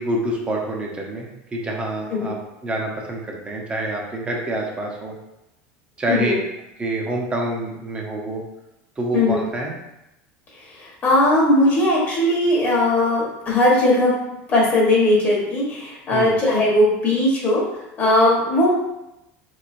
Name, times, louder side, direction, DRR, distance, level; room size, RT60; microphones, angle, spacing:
voice 1, 0.0-2.4 2.6-5.2 6.0-6.3 6.8-8.4 9.0-9.7 16.1-16.3, right 1 dB, 20° right, -1 dB, 0.7 m, -27 dB
voice 2, 10.8-14.1 14.5-17.6 18.0-18.7, left 1 dB, 30° left, -5 dB, 1.0 m, -18 dB
3.3 x 3.1 x 2.5 m, 0.90 s
supercardioid pair, 130°, 6 cm